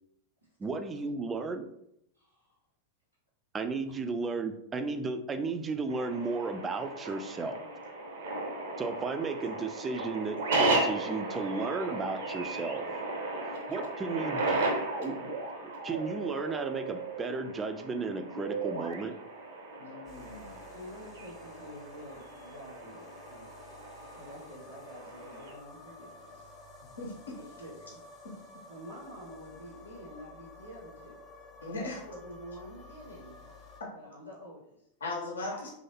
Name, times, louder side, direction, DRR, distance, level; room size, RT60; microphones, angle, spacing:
voice 1, 0.6-1.7 3.5-7.6 8.8-12.8 13.7-15.2 15.8-19.2, right 4 dB, 20° right, 6 dB, 0.3 m, -34 dB
voice 2, 2.1-2.5 20.7-23.5 24.2-26.6 27.3-28.0 28.7-31.2 31.8-33.6 33.9-34.9 35.5-35.6, equal, 80° right, -7 dB, 0.9 m, -48 dB
sound 1, 5.9-25.5, right 2 dB, 60° right, 0.6 m, -35 dB
voice 3, 19.8-20.6 27.0-27.4 28.2-28.3 31.6-32.0 33.8-33.9 35.0-35.7, left 2 dB, 70° left, -1 dB, 0.7 m, -38 dB
sound 2, 20.0-33.8, left 2 dB, 25° left, 0.7 m, -52 dB
3.1 x 2.7 x 2.7 m, 0.77 s
figure-of-eight pair, 90°, 0 cm